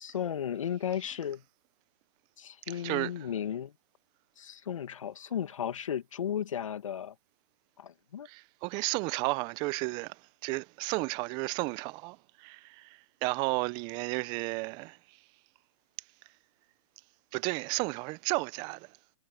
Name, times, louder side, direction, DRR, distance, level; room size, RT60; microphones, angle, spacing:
voice 1, 0.0-1.4 2.4-3.7 4.4-7.1 7.8-8.3, left 9 dB, 75° left, 2.0 m, -35 dB
voice 2, 2.7-3.3 8.2-15.0 17.3-19.0, right 25 dB, 25° right, 0.6 m, -33 dB
hypercardioid pair, 145°, 17 cm